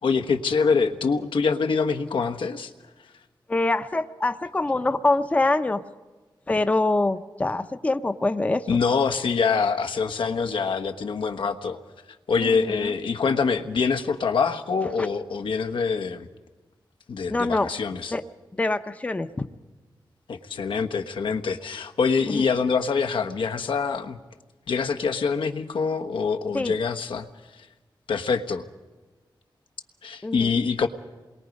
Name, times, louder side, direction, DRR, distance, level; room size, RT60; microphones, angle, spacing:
voice 1, 0.0-2.7 8.7-11.8 12.3-16.3 17.1-18.1 20.3-24.2 24.7-27.3 27.5-27.7 28.1-28.6 30.0-30.9, left 5 dB, 90° left, 7 dB, 1.3 m, -25 dB
voice 2, 3.5-5.8 6.5-8.8 12.4-12.9 17.3-17.7 18.1-18.2 18.5-19.5 22.3-22.4 26.5-26.7 30.2-30.5, left 2 dB, 15° left, 10 dB, 0.6 m, -25 dB
28.0 x 22.0 x 5.3 m, 1.2 s
wide cardioid pair, 175°, 8 cm